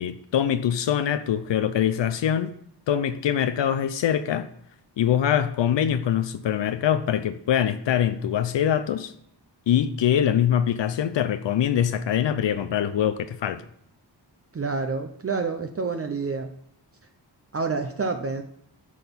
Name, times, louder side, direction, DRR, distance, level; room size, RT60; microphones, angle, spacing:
voice 1, 0.0-2.6 2.9-4.5 5.0-9.1 9.7-13.6, left 9 dB, 75° left, 0.7 m, -23 dB
voice 2, 14.5-16.5 17.5-18.4, right 4 dB, 30° right, 0.8 m, -28 dB
11.0 x 4.1 x 7.0 m
cardioid pair, 85°, 44 cm